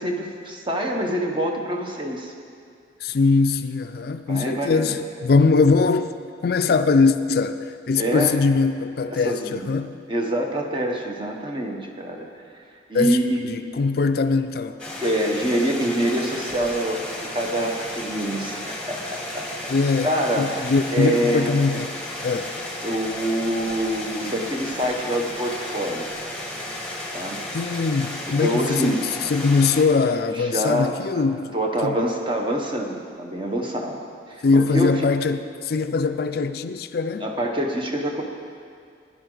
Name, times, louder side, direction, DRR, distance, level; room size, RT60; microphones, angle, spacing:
voice 1, 0.0-2.3 4.3-4.9 8.0-8.3 9.1-9.6 10.1-12.4 12.9-13.4 15.0-17.0 17.3-19.7 20.0-20.5 20.9-21.5 22.8-26.3 27.1-27.4 28.3-29.0 30.4-31.3 31.5-34.0 34.3-35.1 37.2-38.2, right 1 dB, 25° right, 1.1 m, -25 dB
voice 2, 3.0-6.1 6.4-10.0 12.9-13.2 13.5-14.8 19.7-21.9 22.2-22.5 27.5-31.5 31.8-32.0 34.4-37.3, left 4 dB, 55° left, 0.4 m, -21 dB
sound 1, 14.8-29.8, left 1 dB, 5° left, 1.3 m, -33 dB
16.5 x 10.0 x 3.9 m
head